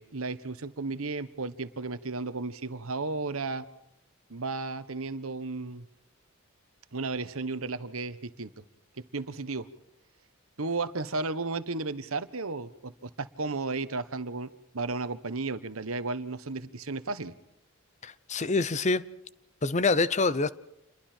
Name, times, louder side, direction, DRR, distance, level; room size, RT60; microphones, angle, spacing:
voice 1, 0.0-3.7 4.3-5.8 6.9-8.5 9.1-9.7 10.6-14.5 14.7-17.3, right 3 dB, 80° right, 1.3 m, -34 dB
voice 2, 18.0-19.0 19.6-20.5, left 3 dB, 35° left, 0.7 m, -26 dB
28.0 x 22.0 x 4.5 m
head